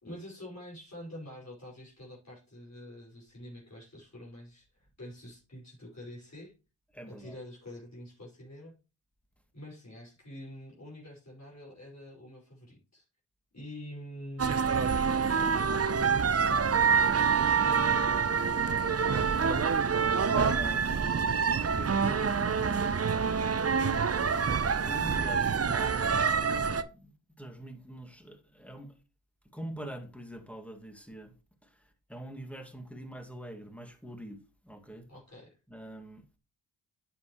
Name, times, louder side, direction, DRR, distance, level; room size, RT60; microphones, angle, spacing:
voice 1, 0.0-6.5 7.1-8.7 9.5-13.0 13.5-16.4 16.8-18.6 35.1-35.6, left 1 dB, 35° left, 5.1 m, -46 dB
voice 2, 6.9-7.4 20.3-23.5 24.6-26.4 26.6-27.1 27.4-28.9 29.5-31.3 31.6-35.1 35.7-36.4, right 1 dB, 5° left, 2.0 m, -44 dB
sound 1, 14.4-26.8, right 6 dB, 35° right, 0.8 m, -26 dB
9.2 x 7.3 x 3.1 m
supercardioid pair, 40°, 44 cm